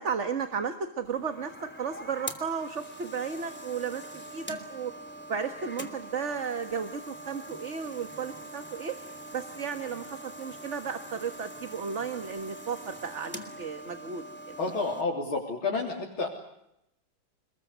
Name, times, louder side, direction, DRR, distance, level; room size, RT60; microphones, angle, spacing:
voice 1, 0.0-4.9 5.3-9.0 9.3-14.2, right 6 dB, 40° right, 8 dB, 1.7 m, -34 dB
sound 1, 1.0-15.0, right 1 dB, 5° left, 2.8 m, -43 dB
voice 2, 14.6-16.3, left 3 dB, 90° left, -2 dB, 4.4 m, -30 dB
29.0 x 21.0 x 8.1 m, 0.80 s
omnidirectional pair, 2.2 m